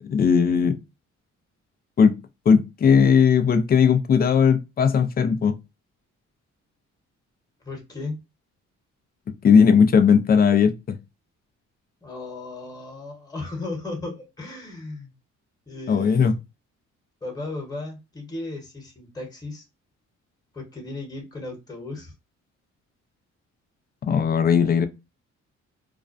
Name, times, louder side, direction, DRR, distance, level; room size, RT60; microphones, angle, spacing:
voice 1, 0.0-0.8 2.0-2.2 2.5-5.5 9.4-10.7 15.9-16.3 24.0-24.9, left 6 dB, 30° left, 0.4 m, -17 dB
voice 2, 7.6-8.2 12.0-15.1 15.7-16.3 17.2-19.6 20.5-22.1, left 2 dB, 10° left, 1.1 m, -35 dB
2.4 x 2.1 x 2.5 m
cardioid pair, 90°, 30 cm